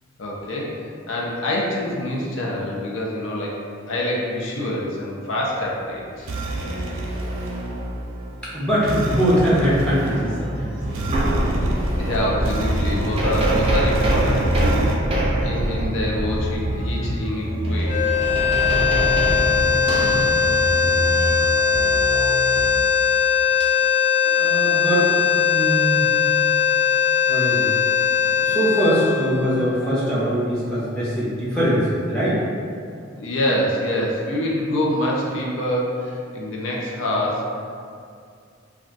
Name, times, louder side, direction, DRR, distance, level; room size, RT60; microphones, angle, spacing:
voice 1, 0.2-6.3 11.2-11.3 12.0-15.0 15.4-18.0 18.7-18.9 24.3-24.4 24.7-24.8 25.8-25.9 28.3-28.4 32.9-37.5, left 1 dB, 75° left, -3 dB, 0.6 m, -26 dB
sound 1, 5.8-15.0, right 1 dB, 85° right, 0.5 m, -29 dB
voice 2, 8.4-11.2 23.6-23.7 24.3-26.1 27.3-27.7 28.2-32.4, equal, 5° left, -10 dB, 0.7 m, -22 dB
sound 2, 10.3-10.4 10.8-22.7, right 1 dB, 30° right, 0.4 m, -24 dB
sound 3, 17.8-30.1, left 7 dB, 35° left, 0.9 m, -20 dB
2.3 x 2.3 x 3.8 m, 2.3 s
head